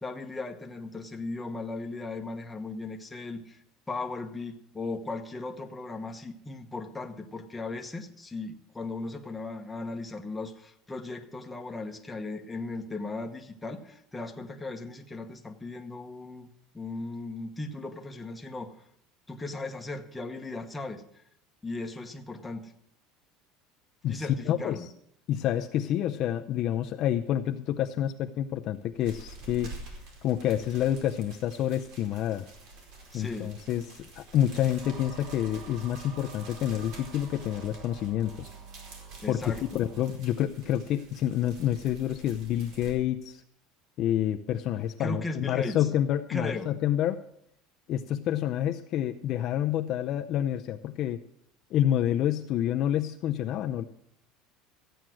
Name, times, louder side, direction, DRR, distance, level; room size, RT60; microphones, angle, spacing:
voice 1, 0.0-16.5 16.7-18.8 19.3-21.2 21.6-22.7 24.1-24.9 33.1-33.5 39.2-39.6 45.0-45.9 46.3-46.7, left 3 dB, 10° left, 3 dB, 1.1 m, -37 dB
voice 2, 24.0-24.8 25.3-29.8 30.2-32.5 33.1-38.5 39.3-43.4 44.0-47.2 47.9-51.2 51.7-53.8, left 11 dB, 40° left, 6 dB, 0.5 m, -28 dB
sound 1, 28.7-42.9, right 2 dB, 60° right, 4.5 m, -48 dB
sound 2, 34.8-40.1, right 6 dB, 40° right, 1.3 m, -47 dB
14.5 x 9.0 x 6.2 m, 0.72 s
cardioid pair, 165°, 0 cm